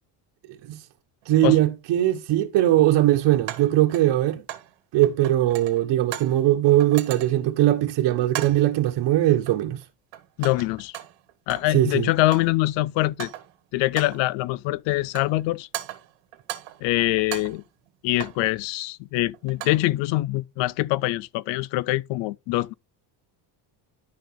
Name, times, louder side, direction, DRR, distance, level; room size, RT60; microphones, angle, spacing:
voice 1, 0.5-0.8 1.3-4.4 4.9-9.8 11.7-12.1, right 14 dB, 70° right, 1.4 m, -20 dB
sound 1, 1.2-1.3 3.5-4.8 5.0-6.4 6.8-7.5 8.3-8.7 9.5-9.8 10.1-11.8 12.1-12.6 13.0-13.6 14.0-14.3 14.9-15.4 15.7-16.9 17.2-18.5 19.3-19.9, right 14 dB, 85° right, 1.8 m, -37 dB
voice 2, 10.4-11.0 11.5-13.3 13.7-15.7 16.8-17.6 18.0-22.7, left 18 dB, 85° left, 0.6 m, -24 dB
12.0 x 5.4 x 3.7 m
cardioid pair, 120°, 44 cm